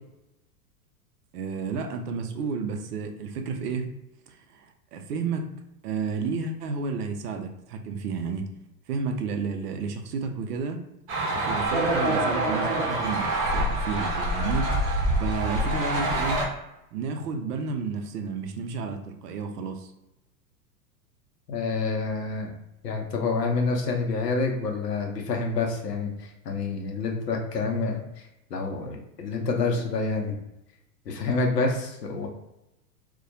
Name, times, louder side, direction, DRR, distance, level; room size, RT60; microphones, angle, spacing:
voice 1, 1.3-3.9 4.3-5.5 5.8-8.5 8.9-10.8 11.3-16.4 16.9-19.9, right 5 dB, 75° right, 6 dB, 0.6 m, -31 dB
sound 1, 11.1-16.5, right 1 dB, 30° right, 0.7 m, -26 dB
voice 2, 21.5-22.6 22.8-30.3 31.1-32.3, left 3 dB, 85° left, 2 dB, 0.7 m, -28 dB
2.2 x 2.1 x 2.6 m, 0.89 s
hypercardioid pair, 100°, 47 cm